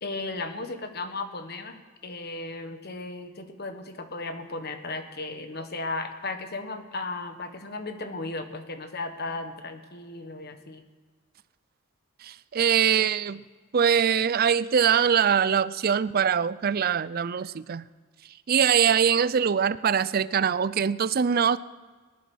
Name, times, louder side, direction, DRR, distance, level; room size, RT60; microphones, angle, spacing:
voice 1, 0.0-10.8, left 2 dB, 50° left, 7 dB, 1.4 m, -35 dB
voice 2, 12.2-13.4 13.7-17.8 18.5-21.6, right 7 dB, 45° right, 17 dB, 0.4 m, -23 dB
19.5 x 11.5 x 6.2 m, 1.4 s
head